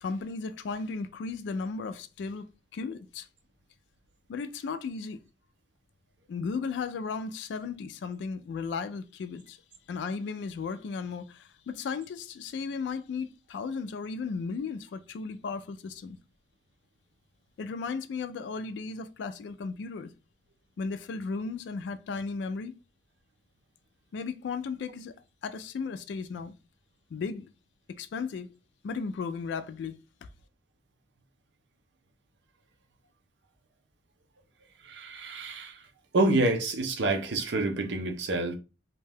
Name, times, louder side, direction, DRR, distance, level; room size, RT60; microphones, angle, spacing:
voice 1, 0.0-3.3 4.3-5.2 6.3-9.6 9.9-16.2 17.6-20.1 20.8-22.8 24.1-25.2 25.4-26.5 27.1-27.5 28.0-28.5 28.8-30.0, left 5 dB, 75° left, 0.3 m, -35 dB
voice 2, 34.8-35.8 36.1-38.6, right 2 dB, 75° right, 0.6 m, -27 dB
2.6 x 2.2 x 3.3 m
head